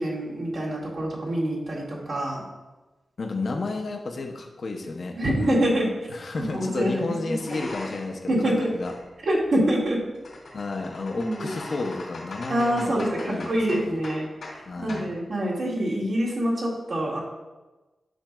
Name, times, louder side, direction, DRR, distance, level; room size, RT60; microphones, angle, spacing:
voice 1, 0.0-2.4 5.1-5.9 6.4-7.6 8.3-8.7 9.2-10.0 11.1-11.5 12.5-14.2 14.8-17.2, right 1 dB, 65° right, -5 dB, 1.8 m, -25 dB
voice 2, 3.2-5.1 6.1-8.9 10.5-12.9 13.2-14.0 14.7-15.1, left 3 dB, 55° left, 2 dB, 0.6 m, -32 dB
sound 1, 5.4-5.6 6.6-8.2 8.5-14.6 14.9-15.1, left 2 dB, 85° left, 2.1 m, -42 dB
8.7 x 5.8 x 2.3 m, 1.1 s
wide cardioid pair, 130°, 0 cm